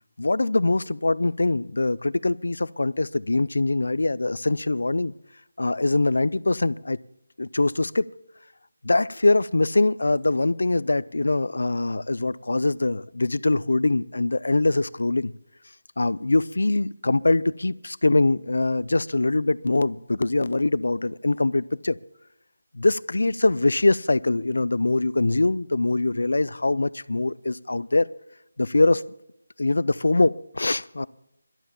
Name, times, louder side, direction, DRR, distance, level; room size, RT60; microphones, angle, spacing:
voice 1, 0.2-5.1 5.6-7.0 7.4-8.0 8.8-15.3 16.0-22.0 22.7-28.1 28.6-29.1 29.6-31.1, left 2 dB, 80° left, 0.5 m, -23 dB
12.0 x 11.5 x 7.1 m
figure-of-eight pair, 175°, 0 cm